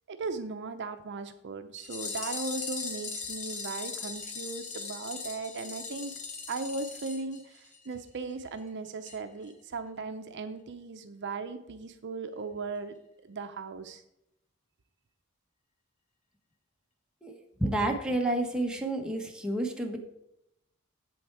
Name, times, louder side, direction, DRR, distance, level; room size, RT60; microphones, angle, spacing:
voice 1, 0.1-6.1 6.5-13.0 13.2-14.0, right 3 dB, 55° right, 8 dB, 0.6 m, -37 dB
sound 1, 1.8-7.9 8.2-8.3 8.6-8.7 9.1-9.2 9.5-9.6, left 5 dB, 35° left, 1.3 m, -39 dB
voice 2, 17.2-20.0, right 1 dB, 5° right, 1 dB, 1.2 m, -30 dB
7.9 x 7.8 x 4.7 m, 0.83 s
head